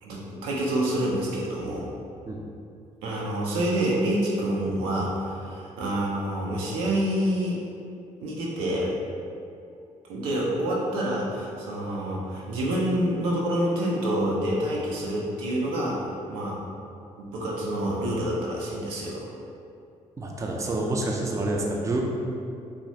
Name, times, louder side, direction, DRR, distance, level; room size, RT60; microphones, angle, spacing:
voice 1, 0.0-1.9 3.0-7.6 8.2-8.9 10.1-16.6 17.2-19.3, right 1 dB, 75° right, -4 dB, 0.5 m, -27 dB
voice 2, 20.2-22.0, right 2 dB, 15° right, 0 dB, 0.4 m, -27 dB
3.0 x 2.0 x 2.7 m, 2.5 s
figure-of-eight pair, 40°, 18 cm